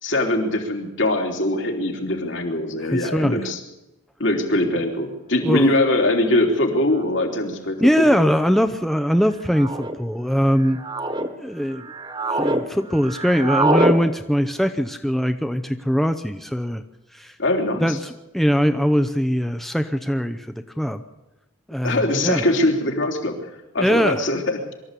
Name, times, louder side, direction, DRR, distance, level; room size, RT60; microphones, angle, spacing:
voice 1, 0.0-3.6 4.2-8.0 17.4-18.0 21.8-23.3 23.7-24.6, left 1 dB, 65° left, 2 dB, 3.5 m, -22 dB
voice 2, 2.9-3.5 5.4-5.7 7.8-10.8 11.4-11.9 12.3-16.8 17.1-17.3 17.8-20.5 20.8-21.0 21.7-22.4 23.8-24.2, equal, ahead, 8 dB, 0.7 m, -21 dB
sound 1, 5.9-6.0 7.0-7.3 8.2-8.6 9.5-10.0 10.6-11.3 11.7-12.6 12.9-14.0, right 1 dB, 25° right, 1.5 m, -24 dB
24.0 x 14.0 x 8.3 m, 0.98 s
head